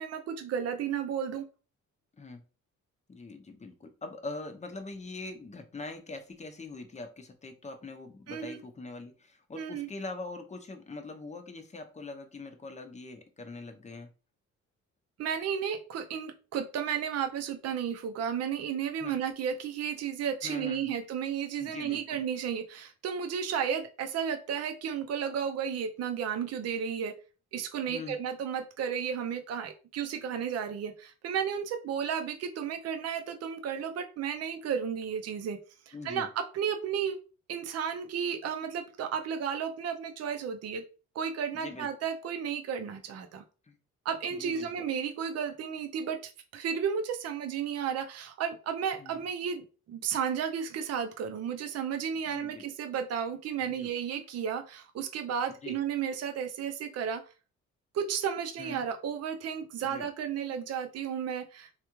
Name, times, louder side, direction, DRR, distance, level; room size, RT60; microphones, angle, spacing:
voice 1, 0.0-1.5 8.3-8.6 9.5-9.9 15.2-27.1 27.5-35.6 35.9-37.2 37.5-40.8 41.1-43.4 44.0-46.2 46.5-57.2 57.9-61.8, right 7 dB, 55° right, 6 dB, 0.6 m, -33 dB
voice 2, 3.1-14.1 18.9-19.2 20.4-21.0 21.6-22.2 27.9-28.2 35.9-36.3 41.5-41.9 43.7-43.8 44.3-44.7 48.9-49.2 52.3-52.6 53.6-53.9 55.5-55.8 58.6-58.9 59.8-60.1, left 3 dB, 25° left, 6 dB, 0.7 m, -43 dB
3.5 x 2.3 x 3.0 m, 0.34 s
cardioid pair, 90°, 30 cm